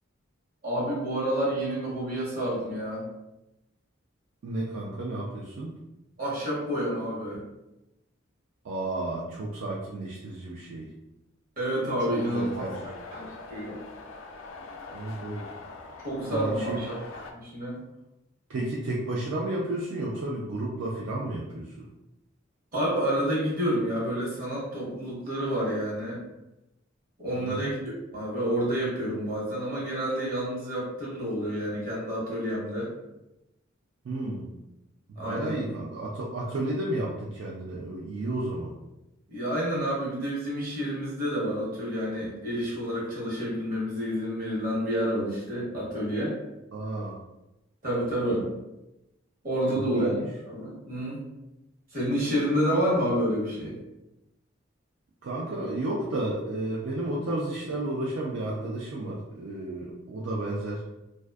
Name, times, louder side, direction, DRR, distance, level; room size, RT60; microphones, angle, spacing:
voice 1, 0.6-3.0 6.2-7.4 11.6-13.8 16.0-17.8 22.7-26.2 27.2-32.9 35.2-35.6 39.3-46.4 47.8-48.5 49.4-50.1 50.4-51.2 51.9-53.8, equal, 45° right, -6 dB, 1.0 m, -29 dB
voice 2, 4.4-5.8 8.6-10.9 12.0-12.9 14.9-15.5 16.2-16.8 18.5-21.9 27.3-27.7 34.0-34.5 35.2-38.7 46.7-47.2 49.7-50.3 55.2-60.8, right 1 dB, 70° right, -5 dB, 0.4 m, -32 dB
sound 1, 12.1-17.3, left 3 dB, 80° left, 0.4 m, -43 dB
2.5 x 2.2 x 2.3 m, 0.94 s
head